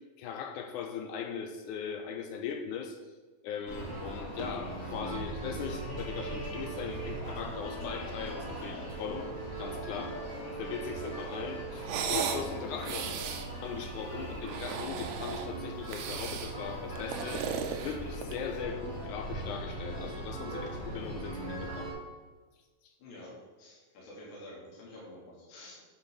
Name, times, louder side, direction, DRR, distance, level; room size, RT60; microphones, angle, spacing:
voice 1, 0.2-3.0 3.4-10.3 10.6-13.2 13.6-21.9 22.8-22.9, left 7 dB, 80° left, 5 dB, 1.9 m, -39 dB
sound 1, 3.7-21.9, right 2 dB, 10° left, 1.4 m, -39 dB
sound 2, 11.8-12.5 12.8-13.5 14.3-15.5 15.9-16.6 17.0-18.5, right 7 dB, 80° right, 2.3 m, -35 dB
voice 2, 23.0-25.7, left 1 dB, 60° left, -6 dB, 3.2 m, -49 dB
8.9 x 4.4 x 5.4 m, 1.3 s
omnidirectional pair, 3.9 m